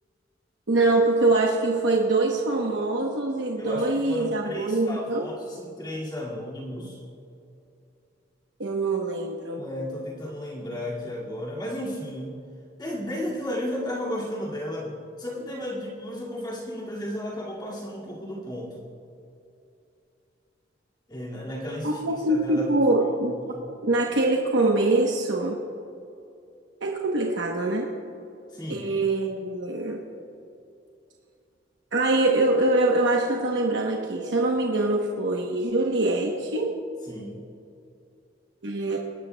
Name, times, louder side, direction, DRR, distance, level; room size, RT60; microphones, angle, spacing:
voice 1, 0.7-5.3 8.6-9.6 21.8-23.3 23.8-25.6 26.8-27.9 28.7-30.0 31.9-36.8 38.6-39.0, right 2 dB, 90° right, 0 dB, 1.0 m, -24 dB
voice 2, 3.6-7.0 9.6-12.4 12.8-18.8 21.1-22.0 22.3-22.7 28.5-28.9 37.0-37.4, left 1 dB, 25° left, -6 dB, 2.2 m, -33 dB
23.5 x 13.0 x 2.2 m, 2.7 s
head